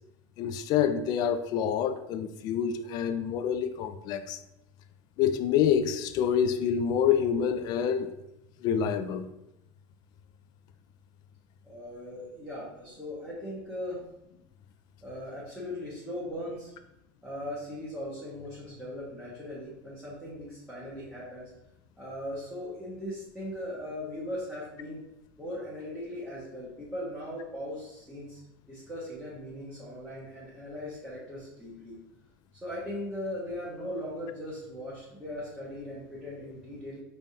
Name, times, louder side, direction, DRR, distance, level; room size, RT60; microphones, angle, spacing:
voice 1, 0.4-4.4 5.2-8.1 8.6-9.3, left 8 dB, 45° left, 0.4 m, -27 dB
voice 2, 11.6-14.0 15.0-16.7 17.2-21.5 22.0-25.0 25.4-28.4 28.7-32.0 32.6-37.0, left 1 dB, 5° right, 1.2 m, -39 dB
5.2 x 3.4 x 2.8 m
supercardioid pair, 135°, 10 cm